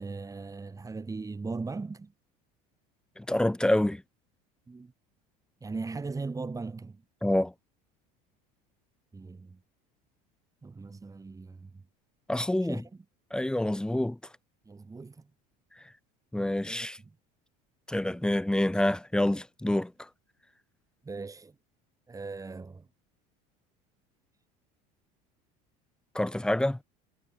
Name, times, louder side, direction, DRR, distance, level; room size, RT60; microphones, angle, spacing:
voice 1, 0.0-2.1 4.7-4.9 5.6-7.0 9.1-9.6 10.6-11.7 12.6-12.8 14.7-15.2 16.7-16.9 18.0-18.2 21.0-21.5 22.1-22.8, right 4 dB, 15° right, 6.2 m, -38 dB
voice 2, 3.2-4.0 7.2-7.5 12.3-12.8 13.3-14.2 16.3-17.0 17.9-20.1 26.1-26.8, left 1 dB, 5° left, 0.7 m, -27 dB
supercardioid pair, 105°, 19 cm